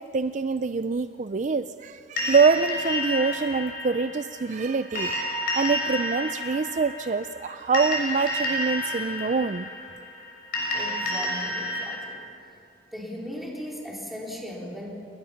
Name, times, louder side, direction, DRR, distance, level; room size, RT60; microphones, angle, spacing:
voice 1, 0.0-9.7, right 4 dB, 40° right, 10 dB, 0.4 m, -25 dB
sound 1, 2.2-12.0, left 1 dB, 50° left, 6.8 m, -30 dB
voice 2, 10.7-12.2 12.9-14.9, equal, ahead, -3 dB, 4.0 m, -37 dB
29.0 x 21.0 x 5.8 m, 2.7 s
head